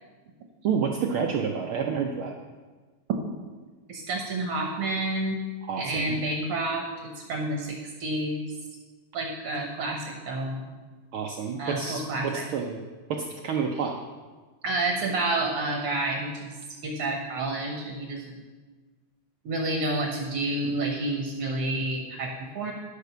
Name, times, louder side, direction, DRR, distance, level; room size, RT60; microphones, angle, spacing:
voice 1, 0.6-2.3 5.7-6.2 11.1-12.8 13.1-14.0, right 6 dB, 85° right, 2 dB, 1.1 m, -29 dB
voice 2, 3.9-5.4 5.8-8.5 9.1-10.6 11.6-12.5 14.6-16.5 16.8-18.4 19.5-22.7, right 2 dB, 60° right, 2 dB, 1.8 m, -29 dB
10.5 x 6.7 x 6.7 m, 1.4 s
omnidirectional pair, 3.3 m